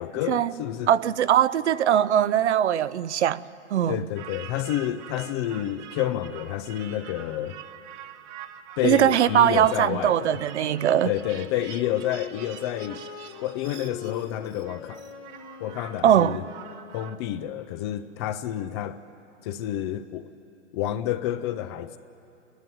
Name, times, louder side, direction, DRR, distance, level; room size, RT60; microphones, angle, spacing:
voice 1, 0.0-0.9 3.9-7.6 8.8-10.4 11.0-13.0 13.4-15.0 15.6-16.4 16.9-19.0 19.4-20.3 20.7-22.0, left 12 dB, 25° left, 0.4 m, -29 dB
voice 2, 0.9-4.0 8.8-11.1 16.0-16.4, right 10 dB, 65° right, 0.6 m, -21 dB
sound 1, 4.1-17.2, right 10 dB, 30° right, 0.8 m, -45 dB
Wind instrument woodwind instrument, 9.1-17.4, left 8 dB, 60° left, 1.2 m, -43 dB
28.5 x 11.0 x 9.2 m
figure-of-eight pair, 110°, 37 cm